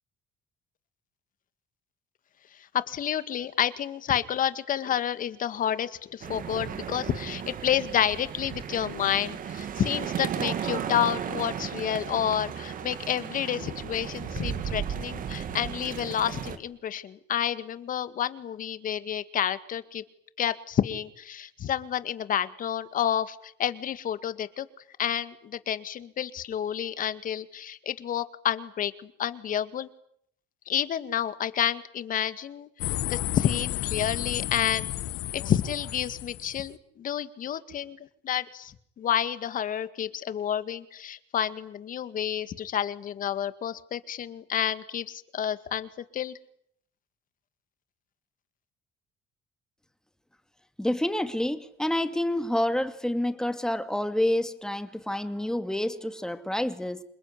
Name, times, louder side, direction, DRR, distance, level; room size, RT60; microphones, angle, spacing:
voice 1, 2.9-20.0 20.4-24.7 25.0-29.9 30.7-32.7 33.1-34.9 35.3-38.0 38.2-46.4, left 10 dB, 55° left, 13 dB, 2.0 m, -29 dB
sound 1, 6.2-16.6, right 8 dB, 55° right, 2.5 m, -35 dB
sound 2, 32.8-36.7, left 15 dB, 85° left, 1.6 m, -32 dB
voice 2, 50.8-57.0, left 1 dB, 5° left, 9 dB, 2.5 m, -28 dB
28.0 x 21.5 x 9.9 m, 0.69 s
cardioid pair, 110°, 17 cm